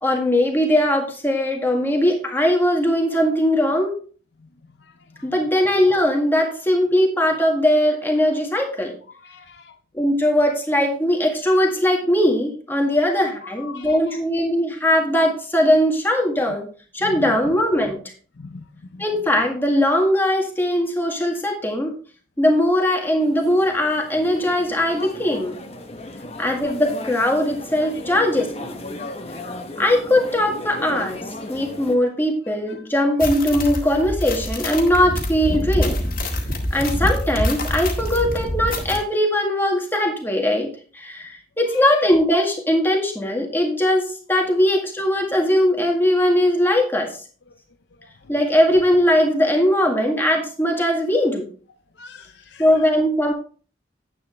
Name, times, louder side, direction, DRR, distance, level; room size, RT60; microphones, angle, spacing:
voice 1, 0.0-4.0 5.2-8.9 9.9-16.7 16.9-18.0 19.0-21.9 22.4-25.6 26.4-28.8 29.8-36.0 36.7-47.1 48.3-51.5 52.6-53.3, left 1 dB, 10° left, 2 dB, 1.8 m, -20 dB
voice 2, 9.1-9.7 13.4-14.2 17.1-17.3 18.4-18.6 18.9-19.0 26.0-26.1 41.7-41.8 52.0-52.7, left 4 dB, 70° left, 8 dB, 0.6 m, -40 dB
sound 1, 23.2-32.0, left 1 dB, 35° left, 1.1 m, -35 dB
sound 2, 33.2-39.0, left 1 dB, 50° left, 1.9 m, -25 dB
10.0 x 8.4 x 3.3 m, 0.41 s
head